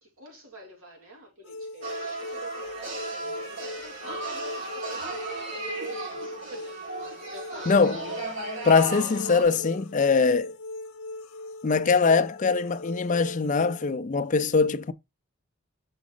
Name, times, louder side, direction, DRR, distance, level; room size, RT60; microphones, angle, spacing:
voice 1, 0.0-6.2 6.5-6.8 7.3-7.8 8.1-8.2 8.9-9.2, right 3 dB, 80° right, 2.3 m, -46 dB
sound 1, 1.4-13.9, left 2 dB, 80° left, 0.6 m, -40 dB
sound 2, 1.8-9.4, right 2 dB, 60° right, 3.3 m, -36 dB
voice 2, 7.7-8.0 8.6-10.5 11.6-14.9, left 4 dB, 35° left, 0.4 m, -22 dB
6.1 x 4.2 x 3.8 m
head